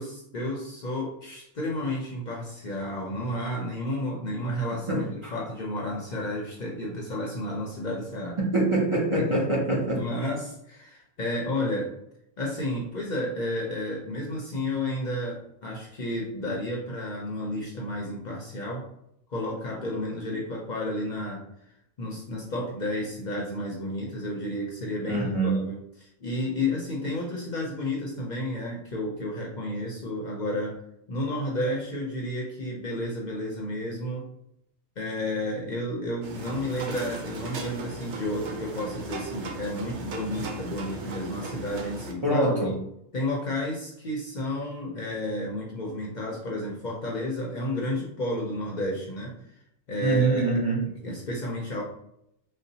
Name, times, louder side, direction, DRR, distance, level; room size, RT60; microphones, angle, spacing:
voice 1, 0.0-8.4 9.1-9.3 9.9-11.9 12.4-18.9 19.3-21.4 22.0-30.8 31.1-34.3 35.0-42.7 43.1-49.4 49.9-51.8, left 1 dB, 50° left, -2 dB, 0.6 m, -31 dB
voice 2, 4.7-5.3 8.5-10.0 25.0-25.6 42.2-42.8 50.0-50.8, right 2 dB, 35° right, -5 dB, 0.6 m, -25 dB
sound 1, 36.2-42.1, right 3 dB, 90° right, 0.9 m, -37 dB
3.9 x 2.1 x 2.7 m, 0.77 s
omnidirectional pair, 1.2 m